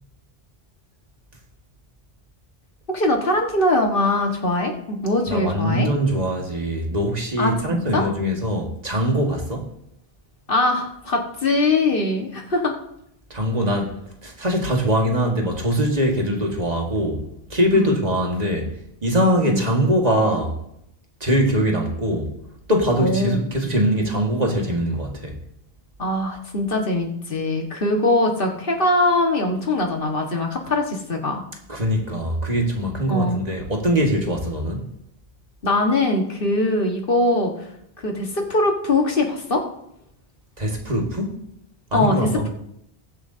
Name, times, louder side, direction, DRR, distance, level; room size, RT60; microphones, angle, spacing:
voice 1, 2.9-5.9 7.4-8.1 10.5-12.7 17.8-18.0 19.4-19.6 23.0-23.4 26.0-31.4 33.1-33.4 35.6-37.5 38.0-39.6 41.9-42.5, left 2 dB, 60° left, 1.8 m, -22 dB
voice 2, 5.3-9.7 13.3-17.2 17.5-18.7 19.0-20.6 21.2-22.3 22.7-25.4 31.7-34.9 40.6-41.4 41.9-42.5, equal, 40° right, 1.8 m, -22 dB
20.5 x 8.0 x 2.8 m
omnidirectional pair, 1.1 m